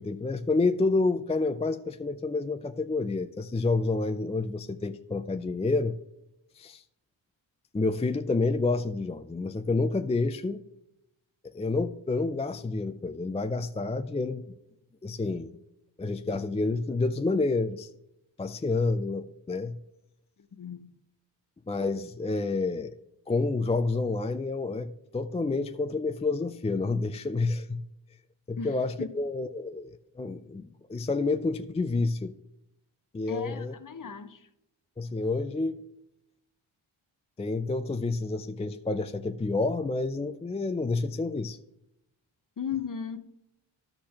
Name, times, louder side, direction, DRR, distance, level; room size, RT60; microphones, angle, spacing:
voice 1, 0.0-6.0 6.6-6.8 7.7-10.6 11.4-14.5 15.0-15.6 16.0-17.9 18.4-19.8 21.7-22.9 23.3-27.8 28.5-32.3 33.1-33.7 35.0-35.8 37.4-41.6, left 3 dB, 15° left, 0.4 m, -29 dB
voice 2, 20.5-21.0 28.6-29.1 33.3-34.5 42.6-43.2, left 7 dB, 40° left, 0.8 m, -36 dB
11.5 x 6.5 x 2.9 m
cardioid pair, 45°, 50 cm